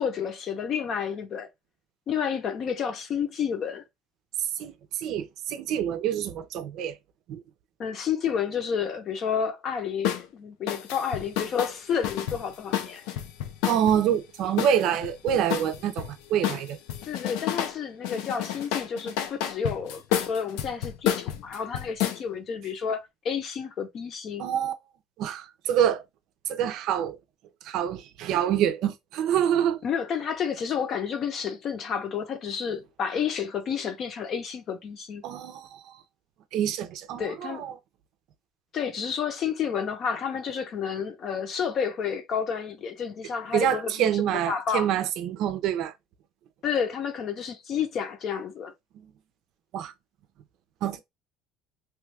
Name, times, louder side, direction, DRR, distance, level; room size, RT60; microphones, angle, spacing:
voice 1, 0.0-1.5 2.1-3.8 7.8-13.1 17.0-24.5 29.8-35.2 37.2-37.6 38.7-44.9 46.6-48.7, left 7 dB, 40° left, 0.7 m, -30 dB
voice 2, 5.0-6.9 7.3-7.4 13.7-16.8 24.4-24.7 25.2-26.0 26.5-27.2 27.6-29.8 35.2-35.8 36.5-37.7 43.5-45.9 49.7-49.9 50.8-51.0, right 9 dB, 60° right, 0.5 m, -26 dB
sound 1, 10.0-10.2 10.7-14.0 14.6-16.1 16.4-17.8 18.0-22.2, left 11 dB, 85° left, 0.5 m, -30 dB
3.1 x 2.3 x 3.2 m
cardioid pair, 155°, 0 cm